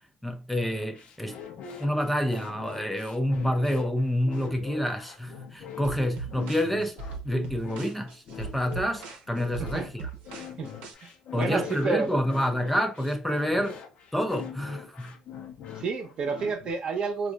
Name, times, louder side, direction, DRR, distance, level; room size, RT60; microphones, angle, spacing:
voice 1, 0.2-1.4 1.8-7.0 7.2-10.1 11.3-13.8 14.1-15.2, equal, 5° left, 0.4 m, -28 dB
sound 1, 0.6-16.7, left 8 dB, 65° left, 0.6 m, -43 dB
sound 2, 5.8-10.9, right 4 dB, 85° right, 0.7 m, -40 dB
voice 2, 10.6-12.1 15.8-17.3, right 4 dB, 50° right, 0.8 m, -30 dB
4.3 x 2.4 x 2.3 m
cardioid pair, 110°, 2 cm